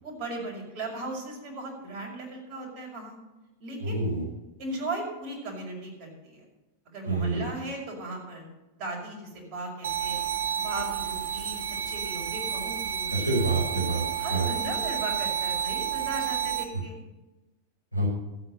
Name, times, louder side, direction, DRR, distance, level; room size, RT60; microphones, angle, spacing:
voice 1, 0.0-3.2 3.6-4.0 4.6-6.5 6.9-8.5 8.7-10.2 10.5-13.3 14.2-17.0, right 2 dB, 40° right, -1 dB, 5.5 m, -37 dB
voice 2, 3.8-4.2 7.1-7.4 13.1-14.0 14.3-14.5 17.9-18.1, right 2 dB, 90° right, -4 dB, 5.5 m, -27 dB
sound 1, 9.8-16.6, right 9 dB, 60° right, 1.2 m, -30 dB
14.0 x 8.8 x 6.8 m, 1.0 s
figure-of-eight pair, 90°, 0 cm